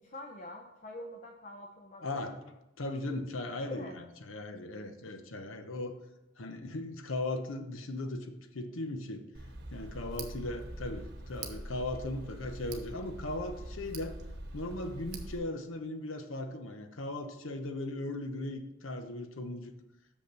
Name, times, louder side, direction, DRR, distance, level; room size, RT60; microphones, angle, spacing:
voice 1, 0.0-2.5 3.7-4.0 13.8-13.9, left 1 dB, 35° left, 3 dB, 0.6 m, -45 dB
voice 2, 2.0-2.4 2.8-6.0 6.4-9.2 9.7-14.1 14.5-19.7, left 2 dB, 70° left, 7 dB, 0.9 m, -38 dB
Tick, 9.3-15.4, right 2 dB, 50° right, 1.0 m, -43 dB
6.5 x 5.6 x 6.0 m, 0.93 s
head